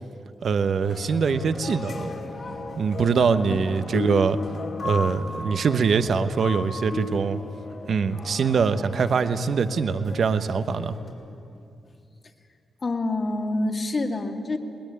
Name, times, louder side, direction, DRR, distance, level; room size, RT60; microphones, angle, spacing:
voice 1, 0.4-2.1 2.8-4.4 4.8-7.4 7.9-11.0, right 5 dB, 70° right, 10 dB, 1.0 m, -23 dB
sound 1, 0.8-11.1, left 3 dB, 65° left, 5.2 m, -35 dB
voice 2, 12.8-14.6, left 2 dB, 45° left, 3 dB, 2.4 m, -27 dB
21.0 x 19.0 x 9.5 m, 2.5 s
supercardioid pair, 45°, 0 cm